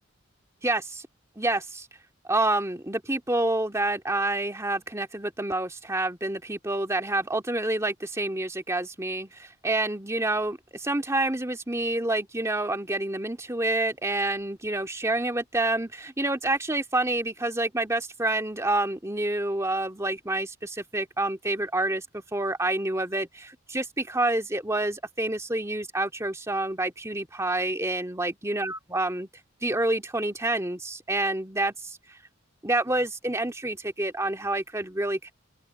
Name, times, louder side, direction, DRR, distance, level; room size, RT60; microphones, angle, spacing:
voice 1, 0.6-1.0 1.4-1.9 2.2-29.3 29.6-32.0 32.6-35.3, right 2 dB, 15° right, 2.2 m, -28 dB
open air
head